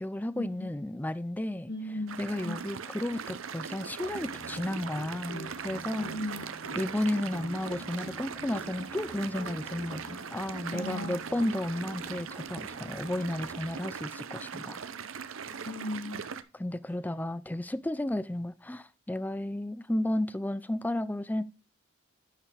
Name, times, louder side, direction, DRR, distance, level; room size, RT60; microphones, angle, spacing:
voice 1, 0.0-1.7 2.2-6.1 6.7-14.8 16.5-21.4, left 1 dB, 10° left, 0.4 m, -33 dB
voice 2, 1.7-2.2 2.4-2.6 5.9-6.4 10.7-11.2 15.5-16.2, left 1 dB, 60° left, 3.4 m, -36 dB
sound 1, 2.1-16.4, right 6 dB, 70° right, 0.7 m, -40 dB
sound 2, 4.0-13.8, left 1 dB, 90° left, 3.0 m, -48 dB
11.0 x 5.6 x 3.4 m
head